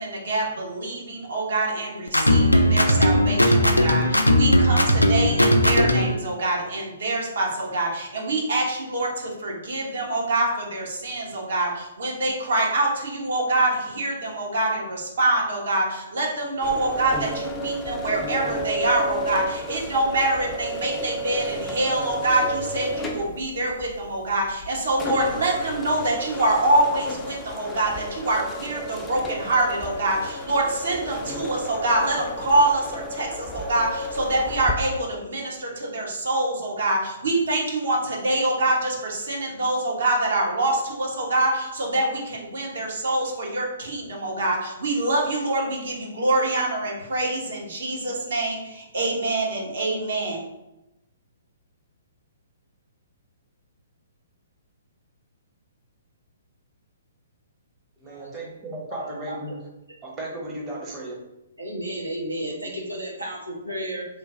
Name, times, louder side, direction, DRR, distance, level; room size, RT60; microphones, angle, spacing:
voice 1, 0.0-50.4, right 2 dB, 60° right, -2 dB, 1.0 m, -25 dB
sound 1, 2.1-6.1, equal, 90° left, 0.3 m, -18 dB
sound 2, 16.6-34.7, equal, 15° left, 0.4 m, -32 dB
voice 2, 58.0-59.6 60.0-61.2, right 1 dB, 25° right, -3 dB, 0.8 m, -35 dB
voice 3, 58.9-59.4 61.6-64.1, right 1 dB, 85° right, -3 dB, 0.9 m, -32 dB
3.1 x 2.2 x 3.7 m, 0.95 s
figure-of-eight pair, 125°, 0 cm